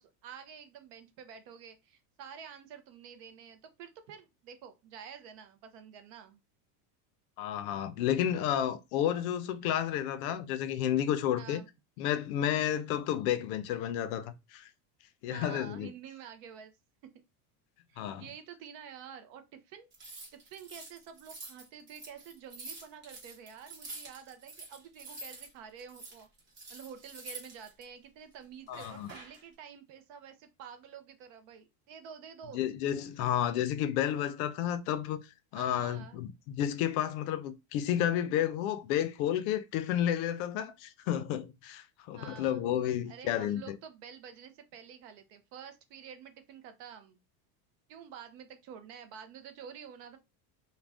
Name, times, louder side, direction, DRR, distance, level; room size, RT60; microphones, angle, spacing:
voice 1, 0.0-6.4 11.3-11.7 15.2-16.7 17.9-19.9 20.3-26.3 26.7-32.6 35.5-36.2 42.1-42.6 43.1-47.2 47.9-50.2, right 8 dB, 45° right, 0.5 m, -49 dB
voice 2, 7.4-11.6 12.0-14.7 15.2-15.9 18.0-18.2 28.7-29.1 32.5-35.2 35.5-43.8, left 10 dB, 60° left, 0.5 m, -31 dB
sound 1, 19.9-25.5 25.8-27.8 28.7-29.4, right 2 dB, 25° right, 1.0 m, -47 dB
2.5 x 2.2 x 3.3 m
cardioid pair, 160°, 48 cm